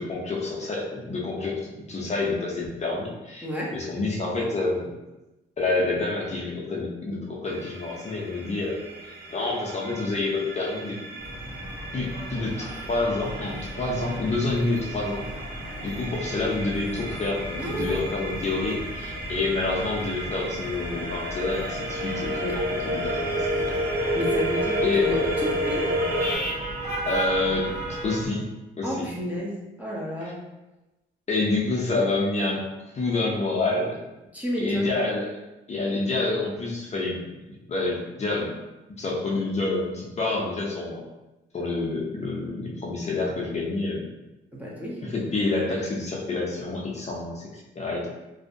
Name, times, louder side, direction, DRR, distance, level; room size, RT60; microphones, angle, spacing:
voice 1, 0.0-1.6 1.9-3.4 3.7-4.9 5.6-11.0 11.9-15.2 15.8-23.8 24.8-25.1 27.1-27.7 28.0-28.4 28.8-29.0 31.3-32.6 32.9-34.0 34.6-35.3 35.7-37.2 37.7-38.5 39.0-41.0 41.5-44.0 45.0-48.1, left 3 dB, 35° left, -2 dB, 0.5 m, -28 dB
voice 2, 3.4-3.7 17.6-18.0 22.4-22.6 24.1-25.9 28.8-30.4 34.3-34.9 44.5-45.0, equal, 5° right, -5 dB, 0.6 m, -31 dB
sound 1, 7.5-26.4, equal, 50° right, 0.7 m, -32 dB
sound 2, 11.2-28.3, right 1 dB, 30° right, 1.1 m, -36 dB
2.5 x 2.1 x 2.5 m, 1.0 s
cardioid pair, 90°, 20 cm